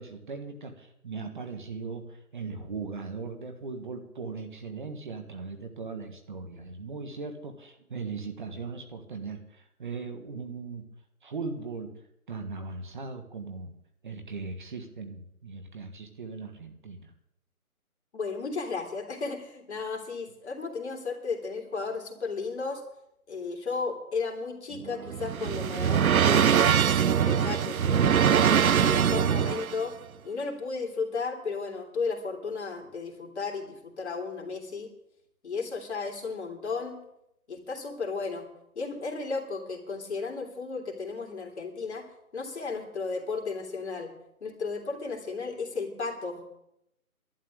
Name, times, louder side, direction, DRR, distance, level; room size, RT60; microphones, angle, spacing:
voice 1, 0.0-10.8 11.2-11.9 12.3-13.7 14.0-17.1, right 4 dB, 35° right, 6 dB, 1.5 m, -38 dB
voice 2, 18.1-22.8 23.3-28.2 28.8-30.0 30.2-34.9 35.4-37.0 37.5-38.5 38.7-42.1 42.3-44.1 44.4-46.6, left 4 dB, 50° left, 2 dB, 3.3 m, -34 dB
sound 1, 24.7-29.8, right 8 dB, 70° right, 0.7 m, -23 dB
12.0 x 8.3 x 9.9 m, 0.78 s
figure-of-eight pair, 165°, 44 cm